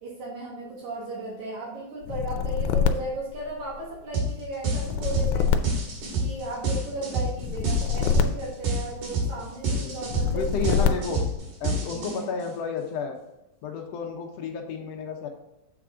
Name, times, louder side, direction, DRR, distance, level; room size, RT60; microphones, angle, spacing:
voice 1, 0.0-5.8 6.2-10.5 10.8-10.9 11.9-12.3, right 2 dB, 70° right, -5 dB, 2.8 m, -35 dB
sound 1, 2.0-4.0 4.7-6.6 7.4-9.3 10.0-11.4, left 7 dB, 85° left, 2.1 m, -26 dB
sound 2, 4.1-4.3 4.6-12.4, right 2 dB, 85° right, 3.5 m, -27 dB
voice 2, 10.3-11.2 11.6-13.2 13.6-15.3, left 5 dB, 65° left, 2 dB, 1.8 m, -31 dB
7.8 x 4.8 x 3.7 m, 0.93 s
omnidirectional pair, 3.5 m